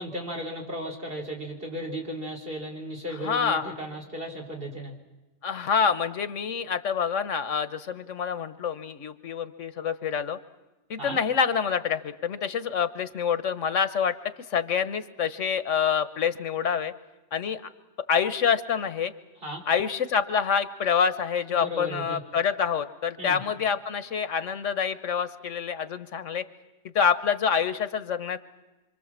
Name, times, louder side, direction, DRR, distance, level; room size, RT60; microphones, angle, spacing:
voice 1, 0.0-4.9 11.0-11.2 19.4-19.6 21.5-22.2 23.2-23.4, equal, 50° right, 1 dB, 4.3 m, -35 dB
voice 2, 3.1-3.7 5.4-10.4 10.9-14.1 14.5-16.9 17.3-17.6 18.1-19.1 19.7-26.4 26.9-28.4, left 7 dB, 90° left, 12 dB, 1.4 m, -26 dB
26.0 x 25.0 x 7.4 m, 1.1 s
omnidirectional pair, 1.2 m